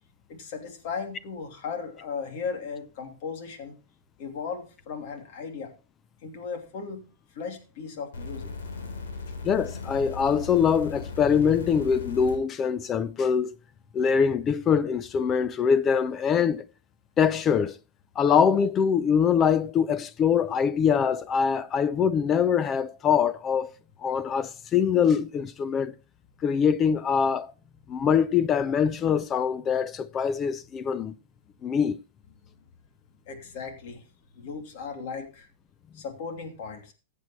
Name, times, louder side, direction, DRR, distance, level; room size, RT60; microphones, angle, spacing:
voice 1, 0.3-3.8 4.2-5.7 6.2-7.0 7.3-8.5 33.3-34.0 34.3-35.5 35.9-36.9, left 5 dB, 55° left, 2.8 m, -36 dB
sound 1, 8.1-12.4 13.3-13.4, left 4 dB, 85° left, 3.5 m, -37 dB
voice 2, 9.4-13.6 13.9-16.6 17.2-17.8 18.2-23.7 24.0-25.9 26.4-27.5 27.9-31.1 31.6-32.0, left 7 dB, 20° left, 0.5 m, -23 dB
15.0 x 7.6 x 3.1 m
hypercardioid pair, 145°, 0 cm